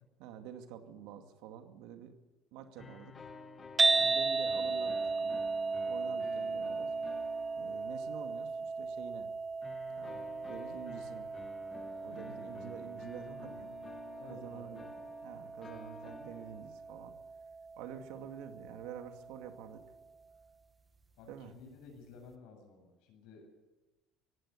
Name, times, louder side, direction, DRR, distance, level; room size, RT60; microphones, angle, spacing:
voice 1, 0.2-2.2 2.5-3.2 3.9-5.4 5.9-6.9 7.6-9.3 9.9-11.3 12.0-13.7 14.3-14.8 15.2-17.2 17.8-19.8 21.3-21.5, right 9 dB, 75° right, 6 dB, 2.3 m, -48 dB
sound 1, 2.8-8.6 9.6-17.0, left 4 dB, 20° left, 1.8 m, -52 dB
sound 2, 3.8-20.0, right 4 dB, 15° right, 1.5 m, -36 dB
voice 2, 14.1-14.8 21.2-23.6, left 4 dB, 65° left, 2 dB, 8.0 m, -54 dB
18.5 x 16.5 x 9.8 m, 1.1 s
cardioid pair, 170°, 0 cm